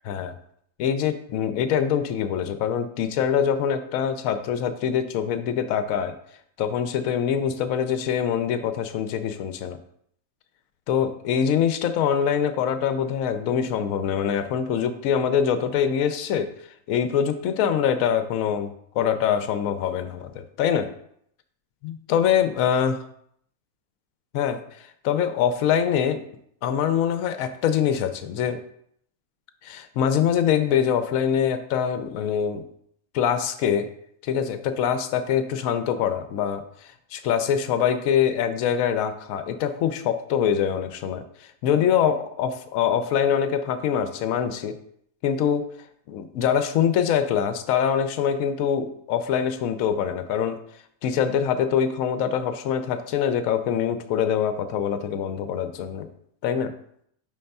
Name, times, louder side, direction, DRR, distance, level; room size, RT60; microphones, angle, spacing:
voice 1, 0.8-6.1 6.6-9.8 10.9-16.5 16.9-18.7 18.9-20.9 21.8-23.0 24.3-26.2 26.6-28.6 29.6-32.6 33.1-33.9 34.2-36.6 37.1-44.8 45.2-45.7 46.1-50.6 51.0-56.1 56.4-56.7, left 8 dB, 70° left, 10 dB, 1.0 m, -24 dB
5.3 x 3.4 x 5.3 m, 0.69 s
omnidirectional pair, 1.6 m